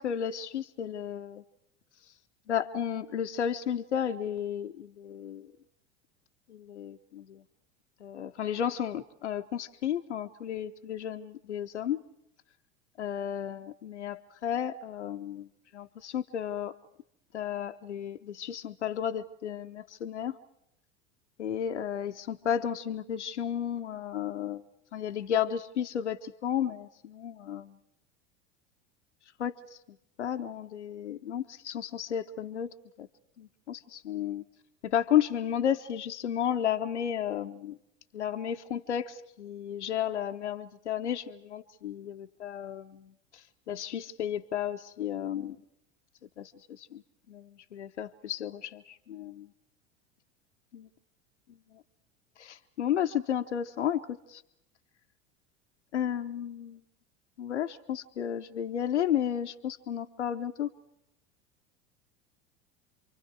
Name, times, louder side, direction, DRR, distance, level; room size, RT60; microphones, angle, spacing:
voice 1, 0.0-1.4 2.5-5.5 6.5-7.4 8.0-12.0 13.0-15.5 15.7-16.8 17.3-20.4 21.4-24.6 24.9-27.8 29.4-29.8 30.2-33.1 33.4-34.4 34.8-37.8 38.1-45.6 46.4-47.0 47.3-49.5 50.7-50.9 52.4-54.4 55.9-56.8 57.4-60.7, left 9 dB, 85° left, 7 dB, 0.8 m, -33 dB
28.5 x 24.5 x 4.7 m, 0.82 s
hypercardioid pair, 80°, 34 cm